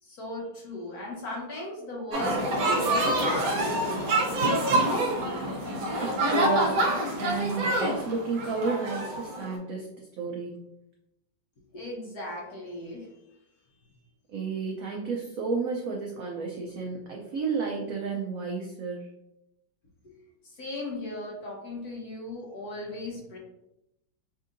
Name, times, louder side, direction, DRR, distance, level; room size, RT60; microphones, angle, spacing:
voice 1, 0.0-5.1 11.7-13.2 20.0-20.1 20.4-23.4, left 1 dB, 60° left, -2 dB, 1.2 m, -38 dB
sound 1, 2.1-9.5, right 1 dB, 55° right, 1.2 m, -26 dB
voice 2, 6.0-6.8 7.2-10.7 14.3-19.1, right 4 dB, 90° right, -1 dB, 0.7 m, -32 dB
5.3 x 2.7 x 2.5 m, 0.86 s
omnidirectional pair, 2.1 m